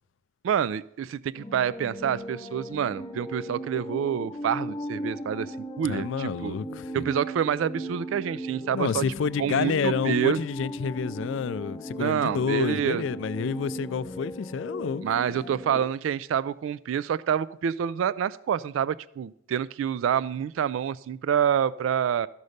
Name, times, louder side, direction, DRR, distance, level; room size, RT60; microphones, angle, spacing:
voice 1, 0.4-6.5 6.9-9.0 9.4-10.4 12.0-13.0 15.0-22.3, right 8 dB, 75° right, 0.3 m, -27 dB
sound 1, 1.3-15.8, equal, 20° left, 0.6 m, -37 dB
voice 2, 5.9-7.0 8.7-15.0, left 6 dB, 65° left, 0.3 m, -29 dB
13.0 x 5.4 x 6.5 m
head